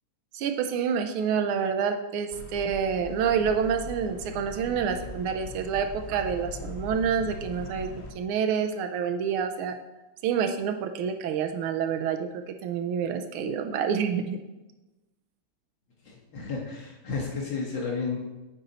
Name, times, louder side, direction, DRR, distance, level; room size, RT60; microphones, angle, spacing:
voice 1, 0.3-7.9 8.1-9.8 10.2-14.4, right 7 dB, 85° right, 6 dB, 1.5 m, -28 dB
sound 1, 2.3-8.1, left 2 dB, 85° left, 0.5 m, -40 dB
voice 2, 16.0-18.2, left 4 dB, 65° left, -3 dB, 1.9 m, -32 dB
9.2 x 4.1 x 4.1 m, 1.1 s
omnidirectional pair, 2.4 m